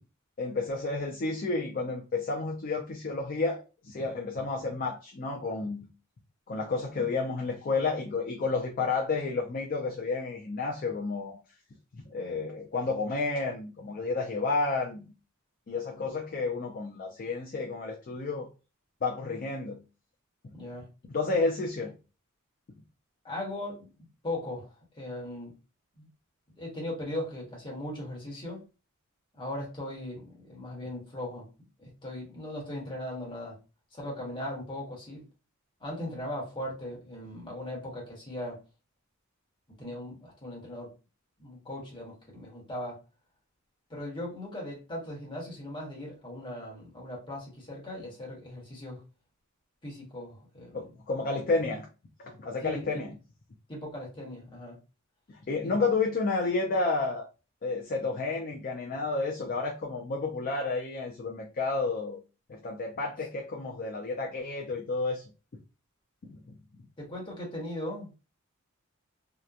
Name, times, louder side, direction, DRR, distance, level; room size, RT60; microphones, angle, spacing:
voice 1, 0.4-5.9 6.5-11.4 11.9-15.1 15.7-18.5 19.0-19.8 21.1-21.9 50.7-51.9 52.2-53.1 55.3-57.3 57.6-62.2 62.5-65.2 66.3-66.5, left 3 dB, 40° left, 0.4 m, -31 dB
voice 2, 20.5-20.9 23.2-24.7 25.0-25.5 26.0-26.1 26.6-28.6 29.4-31.4 31.8-33.6 33.9-35.2 35.8-38.6 39.8-40.9 41.4-43.0 43.9-49.0 49.8-50.8 52.6-53.0 53.7-54.8 55.6-55.7 67.0-68.1, left 1 dB, 25° left, 1.2 m, -38 dB
2.9 x 2.1 x 2.4 m
head